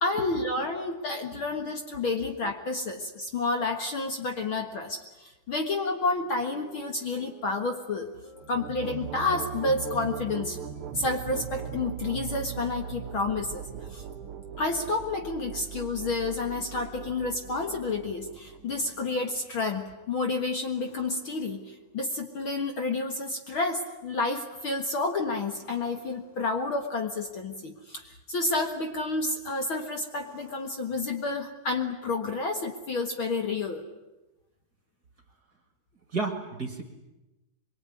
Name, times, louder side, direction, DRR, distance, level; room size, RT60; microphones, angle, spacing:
voice 1, 0.0-8.1 8.5-10.6 10.9-13.7 13.9-14.0 14.6-33.8, left 3 dB, 50° left, 4 dB, 2.0 m, -30 dB
sound 1, 5.8-15.8, left 1 dB, 20° left, 3.9 m, -52 dB
sound 2, 8.4-19.0, right 9 dB, 55° right, 1.6 m, -39 dB
sound 3, 16.5-17.1 17.6-18.2 18.6-19.3 20.8-22.1 25.5-26.8 29.3-29.6 30.1-31.5 33.7-33.8, equal, 75° left, 8.7 m, -56 dB
voice 2, 36.1-36.8, right 3 dB, 35° right, 5 dB, 2.3 m, -32 dB
24.0 x 23.0 x 9.7 m, 1.0 s
omnidirectional pair, 3.5 m